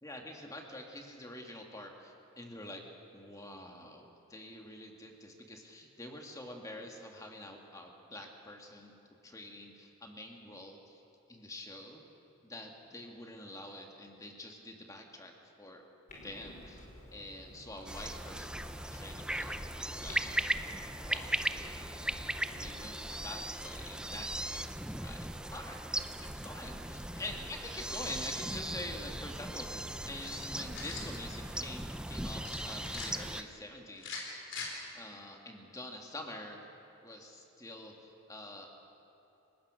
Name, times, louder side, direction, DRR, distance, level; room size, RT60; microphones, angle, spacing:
voice 1, 0.0-2.9 3.1-8.9 9.2-11.0 11.3-12.0 12.4-15.3 15.6-15.9 16.2-19.6 19.9-20.2 20.9-21.7 22.6-24.6 24.9-34.4 34.9-36.6 37.0-38.7, left 1 dB, 15° left, 2 dB, 2.1 m, -47 dB
Clock, 16.1-22.9, equal, 40° left, 4.7 m, -52 dB
sound 1, 17.9-33.4, right 1 dB, 5° right, 0.5 m, -38 dB
sound 2, 30.2-31.1 32.4-33.1 34.0-34.7, left 5 dB, 60° left, 4.3 m, -42 dB
30.0 x 18.0 x 6.4 m, 2.9 s
head